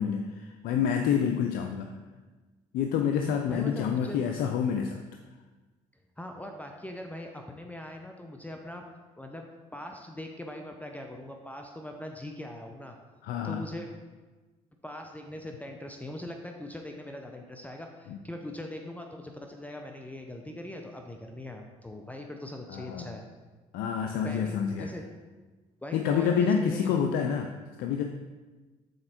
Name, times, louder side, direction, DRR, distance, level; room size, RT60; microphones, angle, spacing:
voice 1, 0.0-1.9 2.7-5.0 13.2-13.7 18.1-18.2 22.7-23.2 23.7-24.9 25.9-28.0, left 7 dB, 70° left, 4 dB, 0.5 m, -28 dB
voice 2, 3.5-4.2 6.2-8.8 9.2-9.5 9.7-13.0 13.4-13.9 14.8-23.2 24.2-25.0 25.8-26.9, left 1 dB, 10° left, 3 dB, 0.6 m, -41 dB
6.5 x 4.4 x 4.3 m, 1.3 s
supercardioid pair, 75°, 16 cm